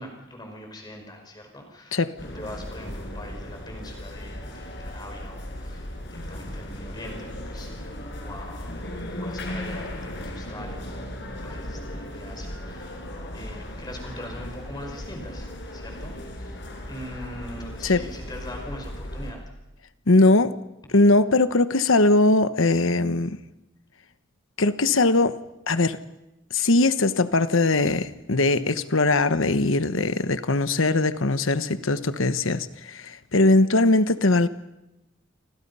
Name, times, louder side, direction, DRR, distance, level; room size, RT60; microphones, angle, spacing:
voice 1, 0.0-13.0 13.3-16.6 16.9-19.4, left 1 dB, 20° left, 5.2 m, -42 dB
sound 1, 2.2-19.3, left 1 dB, 55° left, 5.5 m, -36 dB
voice 2, 20.1-20.5 20.9-23.4 24.6-25.4 25.7-26.0 26.5-34.5, left 2 dB, 70° left, 1.1 m, -20 dB
29.0 x 25.0 x 5.6 m
head